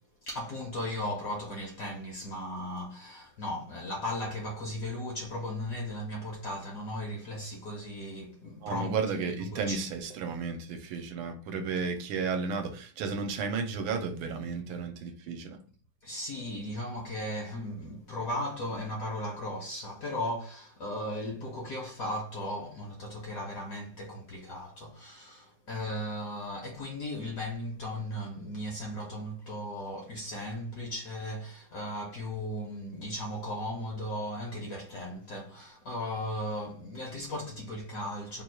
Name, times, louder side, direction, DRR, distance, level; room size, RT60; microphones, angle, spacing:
voice 1, 0.2-9.8 16.0-38.4, left 1 dB, 65° left, 0.9 m, -36 dB
voice 2, 8.6-15.6, right 5 dB, 80° right, 1.5 m, -33 dB
3.5 x 2.3 x 4.4 m
omnidirectional pair, 2.3 m